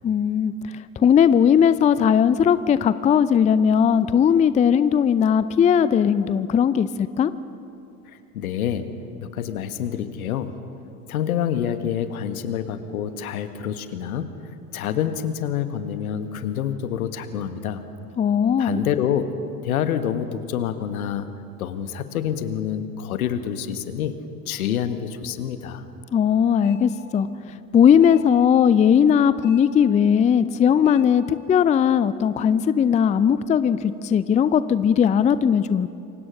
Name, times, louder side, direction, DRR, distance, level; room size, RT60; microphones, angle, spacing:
voice 1, 0.0-7.3 18.2-18.8 26.1-35.9, left 8 dB, 15° left, 15 dB, 0.5 m, -18 dB
voice 2, 8.1-10.6 11.1-14.3 14.7-17.9 18.6-19.3 19.6-24.2 24.5-25.8, left 9 dB, 65° left, 10 dB, 1.7 m, -27 dB
sound 1, 26.6-27.0 28.0-28.4 29.4-29.8 30.8-31.2, left 6 dB, 40° left, 5.7 m, -45 dB
28.0 x 24.5 x 6.4 m, 2.7 s
figure-of-eight pair, 75°, 45 cm